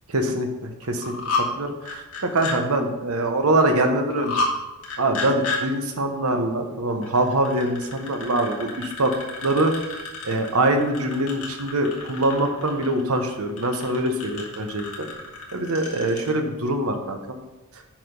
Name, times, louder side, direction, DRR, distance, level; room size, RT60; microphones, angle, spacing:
voice 1, 0.1-4.5 5.0-9.1 9.4-15.1 15.5-17.4, right 1 dB, 80° right, 5 dB, 1.1 m, -24 dB
sound 1, 0.8-1.5 1.8-2.6 4.1-4.5 4.8-5.6 7.0-16.3, left 3 dB, 85° left, 1.9 m, -31 dB
7.4 x 5.1 x 5.3 m, 1.0 s
head